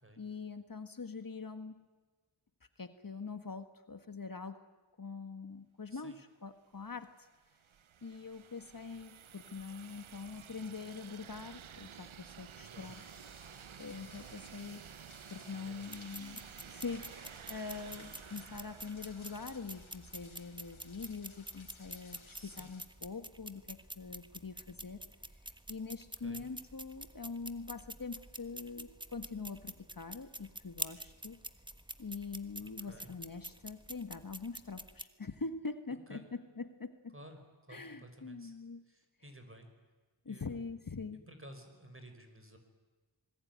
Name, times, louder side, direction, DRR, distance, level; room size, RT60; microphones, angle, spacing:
voice 1, 0.2-1.8 2.8-4.7 5.0-7.3 8.0-13.0 13.8-14.8 15.3-16.4 16.7-25.0 25.5-31.4 32.0-37.1 37.7-38.8 40.2-41.2, left 4 dB, 45° left, 10 dB, 1.4 m, -44 dB
sound 1, 6.8-20.5, right 8 dB, 80° right, 0.8 m, -53 dB
sound 2, 12.8-22.9, left 4 dB, 80° left, 3.4 m, -59 dB
voice 2, 15.4-15.9 22.3-22.7 26.2-26.5 32.6-33.1 35.9-36.3 37.1-37.4 37.7-38.5 38.9-39.7 40.3-40.6 41.1-42.6, right 1 dB, 25° right, 6 dB, 5.3 m, -54 dB
sound 3, 15.9-35.0, right 1 dB, 10° right, 1.4 m, -48 dB
26.5 x 20.0 x 9.5 m, 1.3 s
wide cardioid pair, 55°, 47 cm